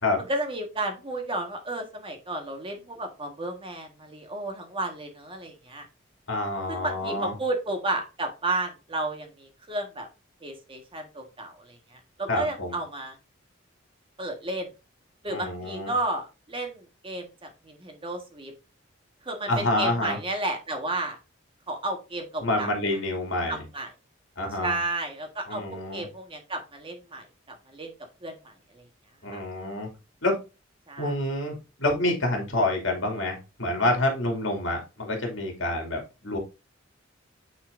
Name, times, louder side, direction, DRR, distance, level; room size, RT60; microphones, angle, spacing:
voice 1, 0.3-5.9 6.7-10.1 10.4-13.1 14.2-14.7 15.2-18.5 19.2-21.2 21.7-22.7 23.5-23.9 24.6-25.6 25.9-27.9 28.2-28.8 29.3-29.4 30.9-31.1, right 2 dB, 25° right, 4 dB, 1.5 m, -32 dB
voice 2, 6.3-7.3 12.3-12.8 15.3-15.9 19.5-20.2 22.4-23.6 24.4-24.8 25.5-26.0 29.2-29.9 30.2-30.4 31.0-36.4, left 1 dB, 75° left, 2 dB, 2.6 m, -27 dB
9.3 x 4.3 x 2.6 m, 0.29 s
head